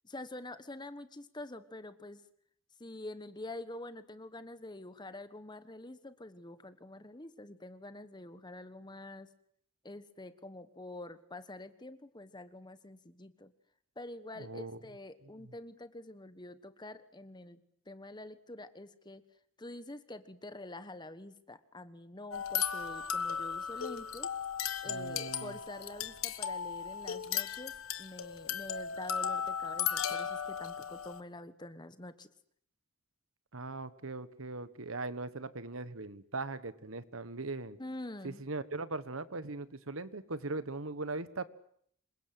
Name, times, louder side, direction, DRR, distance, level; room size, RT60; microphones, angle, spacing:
voice 1, 0.0-2.2 2.8-9.3 9.8-13.5 14.0-19.2 19.6-24.3 24.8-32.3 37.8-38.4, left 2 dB, 20° left, 12 dB, 1.3 m, -46 dB
voice 2, 14.4-14.8 15.4-15.5 24.8-25.5 33.5-37.8 38.2-41.5, right 3 dB, 80° right, 14 dB, 1.4 m, -40 dB
sound 1, 22.3-31.2, left 7 dB, 90° left, 1.4 m, -36 dB
27.0 x 23.0 x 7.9 m, 0.67 s
head